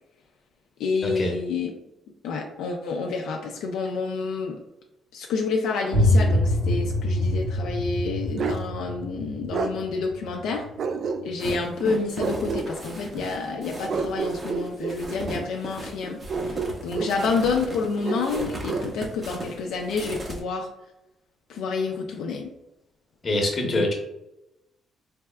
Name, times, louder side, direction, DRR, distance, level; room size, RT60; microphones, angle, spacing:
voice 1, 0.8-1.7 2.2-4.6 5.1-10.6 11.2-20.7 21.5-22.5 23.6-23.8, left 4 dB, 85° left, 1 dB, 0.4 m, -29 dB
sound 1, 5.9-11.5, left 1 dB, 80° right, 1.0 m, -25 dB
Bark, 8.4-8.6 9.5-9.7 10.8-11.5 12.2-12.7 13.9-15.0 16.3-17.2 18.0-18.9, right 4 dB, 60° right, 0.3 m, -29 dB
sound 2, 11.4-20.4, right 1 dB, 30° right, 0.7 m, -36 dB
voice 2, 23.2-23.9, left 1 dB, 40° left, 1 dB, 0.9 m, -24 dB
3.5 x 3.3 x 2.2 m, 0.90 s
cardioid pair, 90°, 0 cm